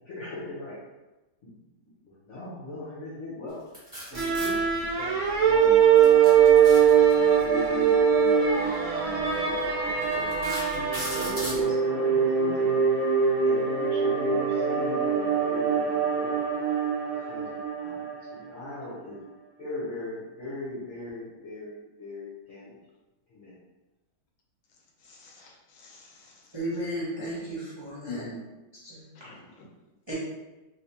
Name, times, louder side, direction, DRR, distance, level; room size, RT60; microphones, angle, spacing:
voice 1, 0.0-0.8 1.4-1.5 2.0-3.6 4.1-4.6 4.9-6.3 7.1-10.3 10.7-12.8 13.4-16.4 17.1-19.2 19.6-22.8 23.3-23.6, left 2 dB, 50° left, -8 dB, 1.0 m, -40 dB
sound 1, 3.7-4.5 6.0-7.4 8.6-8.7 9.3-9.4 10.0-11.6, equal, 15° right, 1.3 m, -36 dB
sound 2, 4.1-11.6, right 8 dB, 90° right, 1.6 m, -21 dB
sound 3, 5.4-18.8, right 5 dB, 70° right, 1.3 m, -27 dB
voice 2, 25.0-26.6 28.1-28.4 29.1-29.7, left 3 dB, 90° left, 0 dB, 1.5 m, -44 dB
voice 3, 26.5-28.3 28.8-29.0 30.1-30.2, right 1 dB, 35° right, -9 dB, 0.4 m, -34 dB
3.3 x 3.1 x 2.8 m, 1.1 s
omnidirectional pair, 2.1 m